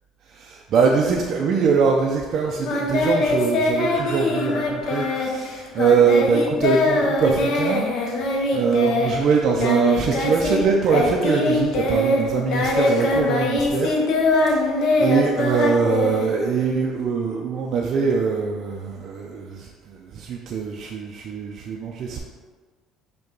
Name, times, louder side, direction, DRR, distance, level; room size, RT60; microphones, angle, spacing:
voice 1, 0.3-13.9 15.0-22.2, right 5 dB, 60° right, 0 dB, 0.4 m, -22 dB
Singing, 2.6-10.6 10.9-16.7, left 2 dB, 65° left, 0.7 m, -22 dB
5.2 x 2.2 x 3.8 m, 1.5 s
supercardioid pair, 95°, 0 cm